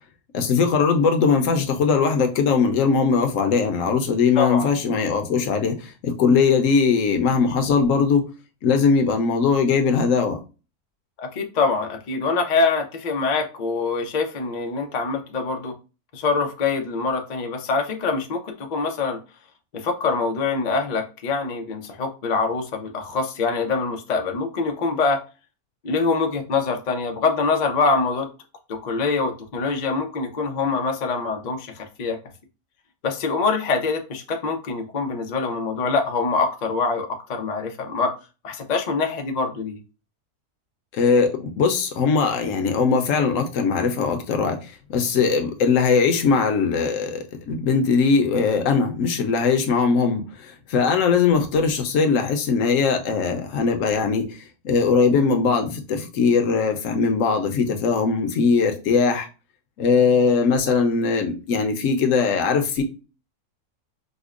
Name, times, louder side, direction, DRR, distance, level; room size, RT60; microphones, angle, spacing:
voice 1, 0.3-8.3 8.6-10.4 40.9-59.3 59.8-62.8, left 5 dB, 65° left, 0.9 m, -20 dB
voice 2, 4.4-4.7 11.2-15.7 16.1-19.2 19.7-25.2 25.8-28.3 28.7-32.2 33.0-38.1 38.4-39.8, left 4 dB, 80° left, 0.3 m, -24 dB
5.1 x 2.1 x 2.4 m
omnidirectional pair, 1.6 m